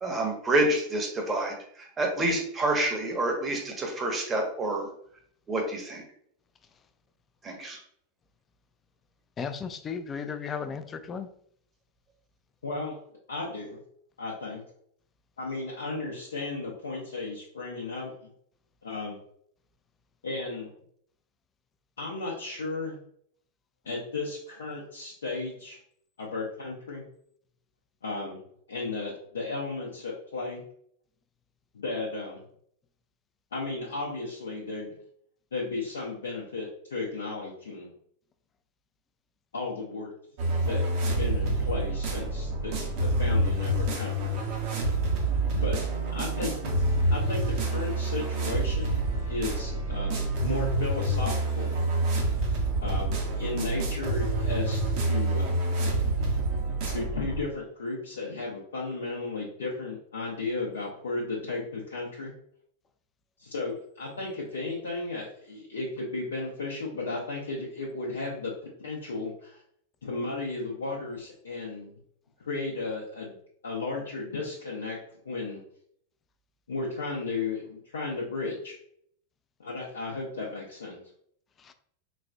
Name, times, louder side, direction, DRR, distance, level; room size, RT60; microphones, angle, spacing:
voice 1, 0.0-4.9 5.5-6.0 7.4-7.8, right 1 dB, 20° right, 1 dB, 0.9 m, -28 dB
voice 2, 9.4-11.3 81.6-81.7, left 6 dB, 25° left, 10 dB, 0.4 m, -35 dB
voice 3, 12.6-13.0 13.3-13.8 14.2-14.6 15.4-18.1 18.8-19.2 20.2-20.7 22.0-23.0 23.8-25.8 26.2-27.0 28.0-28.4 28.7-30.6 31.7-32.4 33.5-34.9 35.5-37.9 39.5-40.1 40.7-40.8 41.2-44.3 45.5-45.8 46.1-46.8 47.1-51.8 52.8-55.6 56.9-62.3 63.4-69.6 70.0-71.9 72.5-73.4 73.6-75.0 75.2-75.6 76.7-78.7 79.6-81.0, left 3 dB, 70° left, -5 dB, 0.6 m, -34 dB
sound 1, 40.4-57.4, right 2 dB, 50° right, 0.8 m, -27 dB
4.1 x 2.3 x 2.2 m, 0.66 s
figure-of-eight pair, 90°, 0 cm